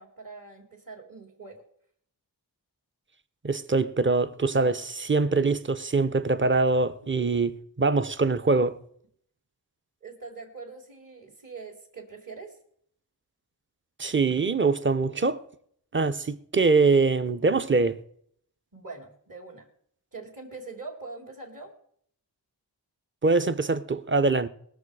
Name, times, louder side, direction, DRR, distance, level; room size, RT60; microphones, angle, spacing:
voice 1, 0.0-1.6 10.0-12.6 18.7-19.7 20.1-21.7, right 3 dB, 55° right, 2.2 m, -43 dB
voice 2, 3.4-8.8 14.0-15.4 15.9-18.0 23.2-24.5, right 3 dB, 30° right, 0.7 m, -23 dB
20.5 x 7.1 x 4.8 m
wide cardioid pair, 90°, 41 cm